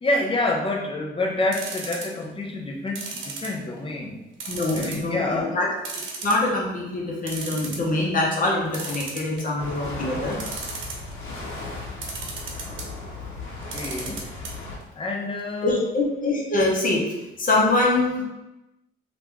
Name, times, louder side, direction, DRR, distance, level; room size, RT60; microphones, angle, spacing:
voice 1, 0.0-4.2 4.7-5.6 13.4-14.2 15.0-15.9, left 2 dB, 25° left, 1 dB, 0.7 m, -28 dB
sound 1, 1.5-2.3 3.0-3.9 4.4-5.1 5.4-5.5 5.8-6.7 7.0-7.1 7.3-7.9 8.7-9.6 10.3-11.1 12.0-12.9 13.6-14.5 14.8-14.9 15.1-15.2, right 4 dB, 75° right, 0.8 m, -34 dB
voice 2, 4.5-5.7 6.2-10.4 15.6-17.0 17.4-18.2, left 2 dB, 45° left, -2 dB, 1.0 m, -24 dB
sound 2, 9.6-14.8, left 2 dB, 80° left, 0.9 m, -36 dB
2.8 x 2.5 x 3.5 m, 0.99 s
cardioid pair, 90°, 20 cm